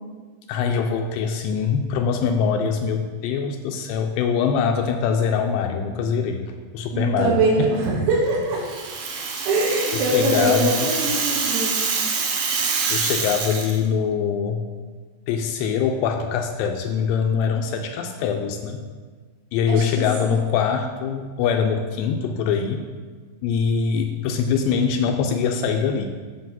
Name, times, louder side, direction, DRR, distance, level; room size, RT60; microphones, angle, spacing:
voice 1, 0.5-6.4 6.7-7.7 9.9-10.9 12.9-14.7 15.3-18.9 19.5-22.9 23.4-26.1, left 6 dB, 85° left, 5 dB, 2.6 m, -23 dB
voice 2, 6.9-8.6 9.5-11.8 12.0-12.2 19.7-19.9 20.2-20.4, right 2 dB, 90° right, -4 dB, 4.0 m, -22 dB
Rattle (instrument), 8.5-13.8, right 5 dB, 70° right, 2.4 m, -25 dB
9.7 x 7.0 x 4.0 m, 1.5 s
omnidirectional pair, 5.2 m